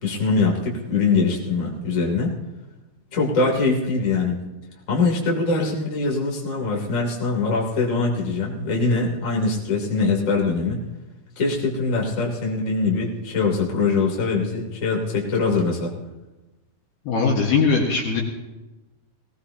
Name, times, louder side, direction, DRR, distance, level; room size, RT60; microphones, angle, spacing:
voice 1, 0.0-2.4 3.1-4.4 4.9-10.8 11.4-15.9, left 3 dB, 20° left, -1 dB, 2.6 m, -22 dB
voice 2, 17.1-18.2, left 5 dB, 65° left, -1 dB, 3.3 m, -20 dB
21.0 x 18.0 x 2.9 m, 1.1 s
omnidirectional pair, 5.6 m